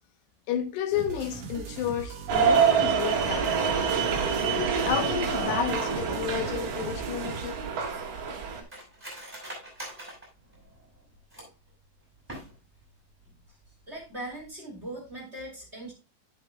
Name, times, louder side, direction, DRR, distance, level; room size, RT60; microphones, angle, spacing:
voice 1, 0.5-3.5 4.8-7.6, left 9 dB, 75° left, 2.8 m, -31 dB
sound 1, 0.9-7.5, right 5 dB, 85° right, 1.5 m, -40 dB
sound 2, 2.3-8.6, right 6 dB, 55° right, 2.9 m, -26 dB
Cutlery silverware, 7.9-11.7 12.2-12.9 13.2-13.3 13.6-14.0 14.3-14.5, right 1 dB, ahead, 5.1 m, -44 dB
voice 2, 13.9-15.9, right 1 dB, 30° right, 1.2 m, -39 dB
11.0 x 7.8 x 2.2 m
omnidirectional pair, 5.4 m